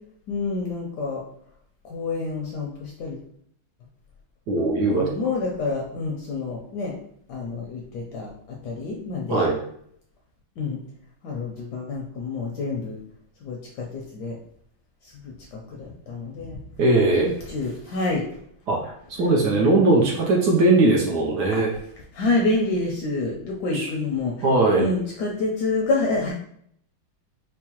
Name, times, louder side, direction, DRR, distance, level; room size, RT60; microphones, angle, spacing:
voice 1, 0.3-1.2 1.8-3.2 4.6-6.9 7.3-9.5 10.6-10.8 11.2-13.0 13.4-14.4 15.0-16.6 17.2-18.3 19.2-19.6 22.1-24.3 24.7-26.3, left 3 dB, 70° left, -1 dB, 1.0 m, -28 dB
voice 2, 4.5-5.1 9.3-9.6 16.8-17.3 18.7-21.7 23.7-23.9 24.4-24.9, right 2 dB, 70° right, -2 dB, 1.0 m, -20 dB
4.6 x 2.1 x 2.8 m, 0.67 s
omnidirectional pair, 2.2 m